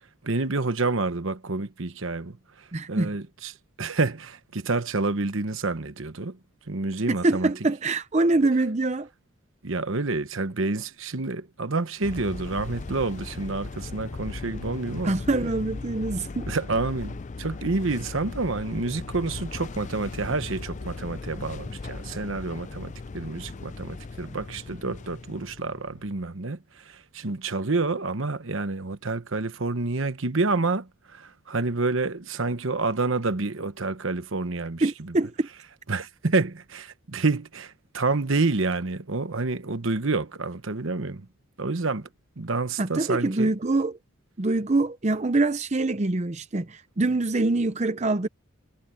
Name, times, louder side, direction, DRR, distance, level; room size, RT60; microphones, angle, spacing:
voice 1, 0.2-6.4 6.7-7.5 9.6-15.2 16.5-35.2 35.9-41.3 41.6-42.1 42.4-43.5, right 3 dB, 65° right, 1.1 m, -28 dB
voice 2, 2.7-3.2 7.2-9.1 15.0-16.5 34.8-35.5 42.8-44.0 44.4-48.3, right 2 dB, 30° right, 0.6 m, -24 dB
sound 1, 12.0-26.3, left 3 dB, 35° left, 0.4 m, -38 dB
head